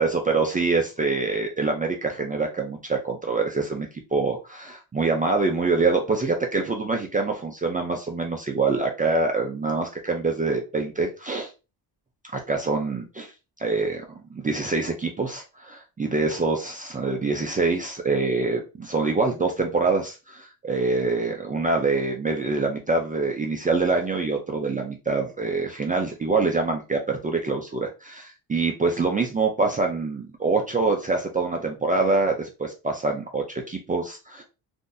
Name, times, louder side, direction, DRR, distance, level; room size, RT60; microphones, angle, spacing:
voice 1, 0.0-11.5 12.3-13.3 13.6-14.0 14.3-34.4, right 3 dB, 20° right, 2 dB, 0.4 m, -25 dB
3.8 x 2.6 x 2.5 m, 0.29 s
cardioid pair, 160°, 42 cm